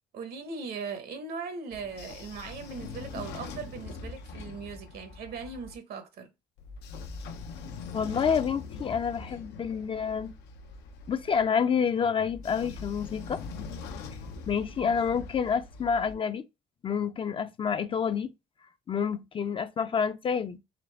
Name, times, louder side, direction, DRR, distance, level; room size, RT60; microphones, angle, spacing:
voice 1, 0.1-6.3, right 5 dB, 65° right, 1.0 m, -39 dB
Train / Sliding door, 1.7-5.7 6.6-11.4 12.3-16.1, left 4 dB, 85° left, 0.6 m, -42 dB
voice 2, 7.9-10.3 11.1-13.4 14.5-16.4 16.8-18.3 18.9-20.6, left 6 dB, 30° left, 0.4 m, -28 dB
3.8 x 3.3 x 3.3 m
cardioid pair, 110°, 17 cm